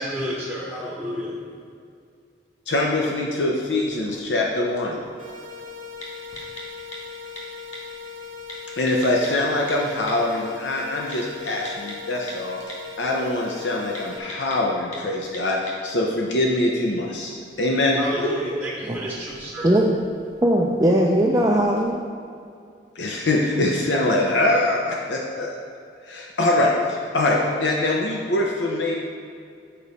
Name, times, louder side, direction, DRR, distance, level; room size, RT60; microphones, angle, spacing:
voice 1, 0.0-1.4 17.3-17.4 17.9-19.7, equal, ahead, -6 dB, 0.9 m, -31 dB
voice 2, 2.7-5.0 8.8-12.6 13.0-17.3 17.6-18.0 23.0-25.6 26.1-28.9, left 2 dB, 75° left, -1 dB, 0.7 m, -23 dB
sound 1, 3.6-21.9, equal, 35° left, 1.6 m, -40 dB
sound 2, 5.2-14.2, left 5 dB, 45° right, 1.0 m, -39 dB
voice 3, 20.4-22.0, right 1 dB, 20° right, -2 dB, 0.5 m, -19 dB
8.9 x 5.1 x 4.1 m, 2.4 s
head